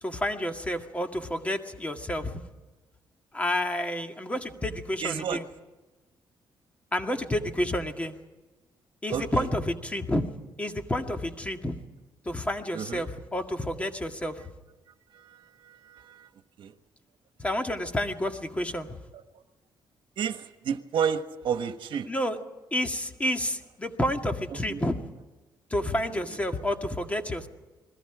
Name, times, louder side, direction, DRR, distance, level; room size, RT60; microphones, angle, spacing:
voice 1, 0.0-2.4 3.3-5.4 6.9-8.1 9.0-10.2 10.6-11.8 12.3-14.5 17.4-19.0 22.1-22.4 22.7-25.0 25.7-27.5, left 1 dB, 15° left, 5 dB, 1.9 m, -30 dB
voice 2, 5.0-5.4 9.1-9.5 12.7-13.0 15.1-16.3 16.6-16.7 19.3-19.4 20.2-22.1 24.7-24.8 26.3-26.4, right 7 dB, 75° right, 8 dB, 1.4 m, -31 dB
28.5 x 21.0 x 5.0 m, 1.2 s
cardioid pair, 110°, 8 cm